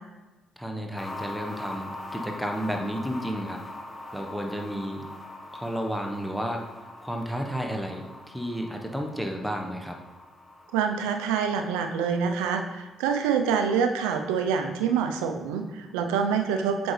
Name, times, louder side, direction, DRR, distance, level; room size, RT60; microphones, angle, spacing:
voice 1, 0.6-3.6 4.1-5.0 5.5-6.7 7.0-10.0, equal, ahead, 2 dB, 1.1 m, -32 dB
sound 1, 0.9-15.4 15.7-15.8, left 2 dB, 30° left, 1.2 m, -43 dB
voice 2, 10.7-16.9, right 6 dB, 85° right, 6 dB, 0.5 m, -26 dB
7.7 x 5.2 x 3.2 m, 1.2 s
hypercardioid pair, 50°, 0 cm